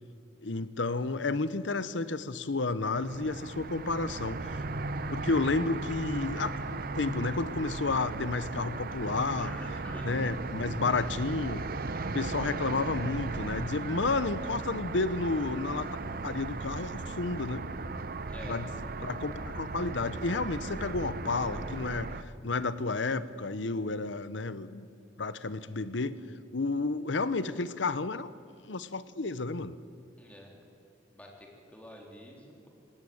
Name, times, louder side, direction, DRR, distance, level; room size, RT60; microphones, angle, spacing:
voice 1, 0.4-4.6 5.1-6.6 6.9-9.5 10.0-11.6 12.1-15.9 16.2-17.7 18.5-24.9 25.2-26.2 26.5-28.3 28.7-29.8, left 3 dB, 80° left, 14 dB, 0.9 m, -31 dB
sound 1, 2.9-22.2, right 3 dB, 50° right, 0.8 m, -37 dB
voice 2, 9.4-10.1 18.3-18.6 30.2-30.5 31.1-32.7, equal, 10° left, -1 dB, 3.6 m, -48 dB
19.0 x 18.0 x 8.8 m, 2.5 s
head